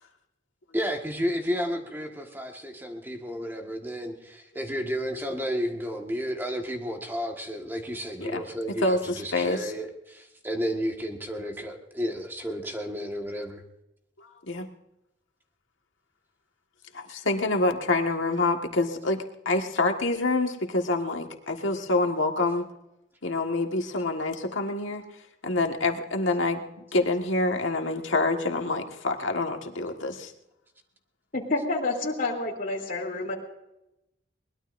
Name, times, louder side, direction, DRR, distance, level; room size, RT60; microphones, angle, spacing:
voice 1, 0.7-13.6, equal, 10° right, 2 dB, 1.6 m, -32 dB
voice 2, 8.8-9.7 14.2-14.7 16.9-19.2 19.4-22.6 23.2-25.0 25.4-26.6 26.9-30.3, left 2 dB, 85° left, 3 dB, 1.7 m, -26 dB
voice 3, 31.3-33.3, left 2 dB, 45° left, 0 dB, 3.2 m, -29 dB
22.5 x 20.5 x 2.6 m, 0.89 s
head